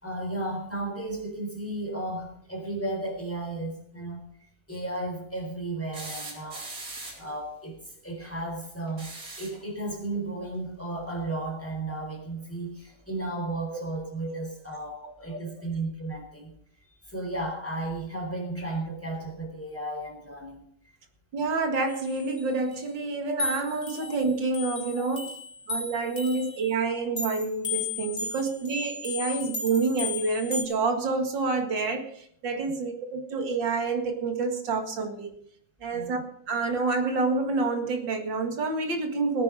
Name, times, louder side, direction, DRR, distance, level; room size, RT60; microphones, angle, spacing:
voice 1, 0.0-4.2 4.7-6.7 7.2-7.7 8.0-9.1 9.4-16.5 16.9-20.6 35.9-36.1, right 2 dB, 5° left, 1 dB, 4.0 m, -34 dB
sound 1, 5.9-7.4 8.9-9.7 11.3-11.4 12.9-13.0, right 2 dB, 45° right, 3.3 m, -40 dB
voice 2, 21.3-25.3 25.7-35.4 35.8-36.2 36.5-39.4, right 3 dB, 70° right, 5 dB, 2.5 m, -28 dB
sound 2, 21.9-22.4 22.7-22.8 23.4-26.6 27.2-30.6, left 4 dB, 25° left, 3.8 m, -34 dB
17.5 x 9.6 x 5.0 m, 0.68 s
omnidirectional pair, 2.1 m